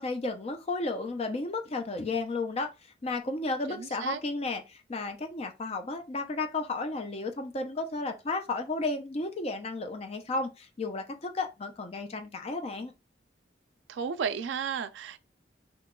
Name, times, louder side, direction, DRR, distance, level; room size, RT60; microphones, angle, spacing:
voice 1, 0.0-2.7 3.0-12.9, left 3 dB, 35° left, 0.5 m, -33 dB
voice 2, 3.7-4.2 13.9-15.2, right 7 dB, 75° right, 0.3 m, -33 dB
2.9 x 2.2 x 3.5 m
head